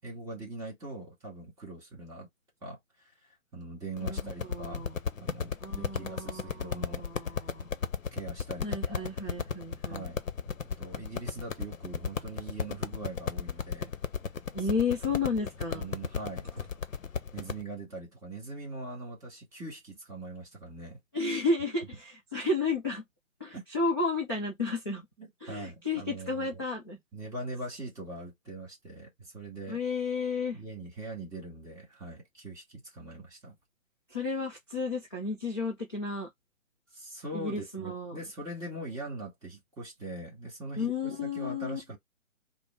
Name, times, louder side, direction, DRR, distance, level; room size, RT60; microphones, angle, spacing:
voice 1, 0.0-2.3 2.6-4.9 5.2-7.4 8.1-9.0 9.8-10.2 10.8-13.9 14.6-14.8 15.7-16.5 17.3-21.0 23.5-23.6 25.2-26.5 27.1-29.8 30.5-33.6 36.9-42.0, right 2 dB, 10° right, 1.8 m, -42 dB
sound 1, 4.0-17.6, left 6 dB, 70° left, 0.8 m, -35 dB
voice 2, 4.0-5.0 5.6-7.7 8.6-10.1 14.5-15.9 21.1-23.0 23.4-25.0 25.4-27.0 29.7-30.6 34.1-36.3 37.3-38.2 40.8-41.8, left 3 dB, 15° left, 0.5 m, -32 dB
4.8 x 2.0 x 3.5 m
figure-of-eight pair, 145°, 41 cm